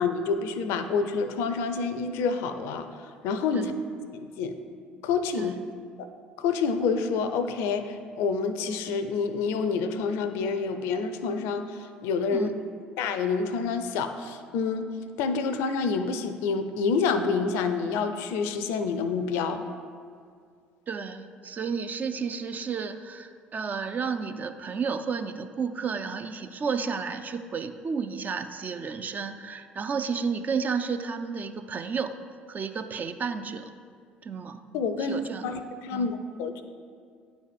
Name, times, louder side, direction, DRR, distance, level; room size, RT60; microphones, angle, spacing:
voice 1, 0.0-3.7 4.1-4.6 5.0-5.5 6.0-6.1 6.4-12.5 13.0-14.9 15.2-19.6 34.7-36.6, left 5 dB, 65° left, 9 dB, 0.5 m, -28 dB
voice 2, 20.9-32.1 32.5-33.7 34.2-34.6 35.0-35.5 35.9-36.1, right 5 dB, 35° right, 9 dB, 0.5 m, -32 dB
9.2 x 4.1 x 5.1 m, 2.2 s
hypercardioid pair, 60°, 5 cm